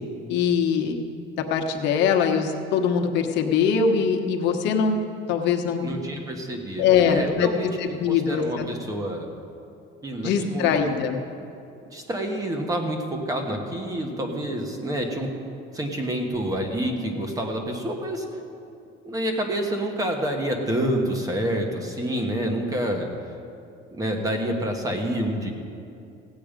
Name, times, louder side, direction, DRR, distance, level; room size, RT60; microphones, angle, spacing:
voice 1, 0.3-1.0 1.5-5.0 5.3-5.8 6.8-7.5 7.8-8.7 10.2-11.2, left 6 dB, 55° left, 3 dB, 1.2 m, -22 dB
voice 2, 5.8-9.3 10.0-10.9 11.9-15.3 15.7-18.2 19.0-23.1 23.9-25.5, right 1 dB, 15° right, 3 dB, 1.3 m, -28 dB
16.5 x 8.6 x 5.2 m, 2.6 s
cardioid pair, 160°, 21 cm